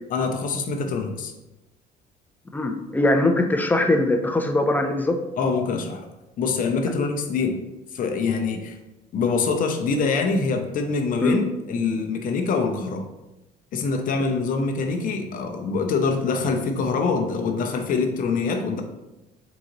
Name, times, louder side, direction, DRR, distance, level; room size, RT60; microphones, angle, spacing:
voice 1, 0.1-1.3 5.4-6.1 6.4-7.6 7.9-8.8 9.1-13.1 13.7-18.8, left 4 dB, 55° left, 5 dB, 0.6 m, -24 dB
voice 2, 2.5-5.2 11.2-11.4, left 2 dB, 10° left, 5 dB, 0.5 m, -21 dB
3.8 x 3.8 x 3.0 m, 0.99 s
cardioid pair, 110°, 17 cm